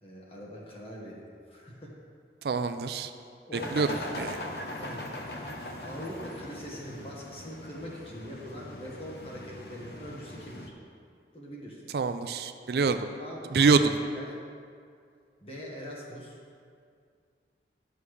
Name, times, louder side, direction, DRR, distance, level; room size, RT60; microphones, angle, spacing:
voice 1, 0.0-1.9 3.5-4.3 4.8-5.1 5.8-10.7 11.3-12.0 13.2-14.3 15.4-16.4, equal, 35° left, -4 dB, 1.5 m, -42 dB
voice 2, 2.4-3.1 3.7-3.9 4.2-4.3 11.9-13.1 13.5-13.8, right 5 dB, 65° right, 9 dB, 0.4 m, -25 dB
sound 1, 3.5-10.7, left 1 dB, 70° left, 0.9 m, -41 dB
12.5 x 6.9 x 3.3 m, 2.2 s
head